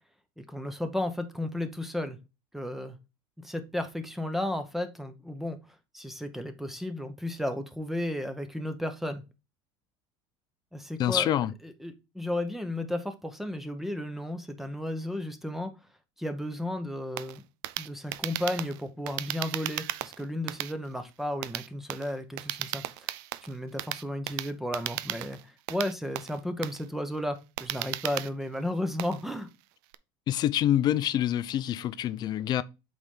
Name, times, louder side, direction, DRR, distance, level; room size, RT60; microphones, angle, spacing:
voice 1, 0.4-2.2 2.5-3.0 3.4-5.6 5.9-9.2 10.7-11.3 11.6-15.7 16.2-17.4 17.8-23.1 23.4-29.5, left 1 dB, ahead, 0.8 m, -33 dB
voice 2, 11.0-11.5 30.3-32.6, left 11 dB, 40° left, 0.5 m, -26 dB
sound 1, 17.2-29.9, right 16 dB, 75° right, 0.4 m, -36 dB
8.0 x 4.2 x 3.7 m
cardioid pair, 140°, 11 cm